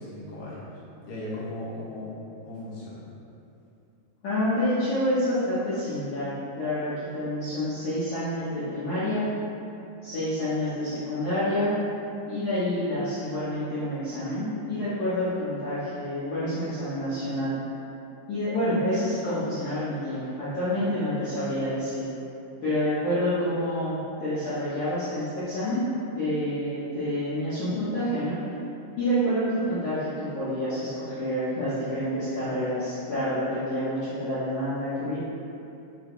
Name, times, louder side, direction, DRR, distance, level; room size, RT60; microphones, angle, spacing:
voice 1, 0.0-2.1 2.4-3.0, left 1 dB, 70° left, -9 dB, 3.0 m, -37 dB
voice 2, 4.2-6.3 6.6-9.3 10.0-11.8 12.3-17.5 18.3-22.1 22.6-25.9 26.1-28.4 29.0-35.2, left 1 dB, 85° left, -13 dB, 1.6 m, -28 dB
8.6 x 6.1 x 2.2 m, 2.7 s
omnidirectional pair, 5.3 m